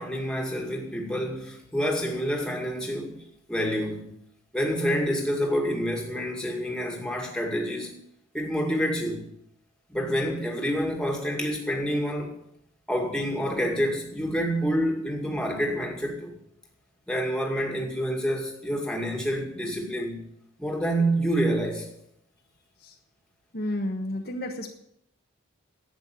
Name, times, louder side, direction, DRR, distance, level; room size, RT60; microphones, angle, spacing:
voice 1, 0.0-4.2 4.5-8.0 8.3-9.3 9.9-12.4 12.9-16.4 17.1-20.2 20.6-21.9, equal, 5° left, 2.2 m, -28 dB
voice 2, 23.5-24.7, left 1 dB, 45° left, 1.3 m, -31 dB
11.5 x 8.8 x 8.9 m
head